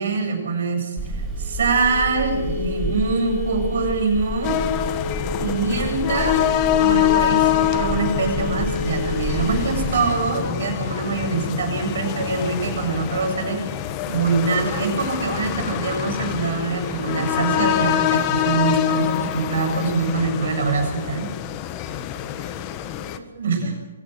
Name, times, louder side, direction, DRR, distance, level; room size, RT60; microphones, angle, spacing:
voice 1, 0.0-4.6 5.4-6.4 6.8-21.3 23.4-23.7, right 4 dB, 65° right, 3 dB, 7.8 m, -24 dB
Telephone, 1.0-9.9, left 1 dB, ahead, 7.3 m, -28 dB
voice 2, 2.5-3.1 21.8-23.7, right 3 dB, 45° right, -1 dB, 6.1 m, -47 dB
sound 1, 4.4-23.2, left 12 dB, 30° left, 1.6 m, -25 dB
25.5 x 16.0 x 8.0 m, 1.1 s
figure-of-eight pair, 125°, 0 cm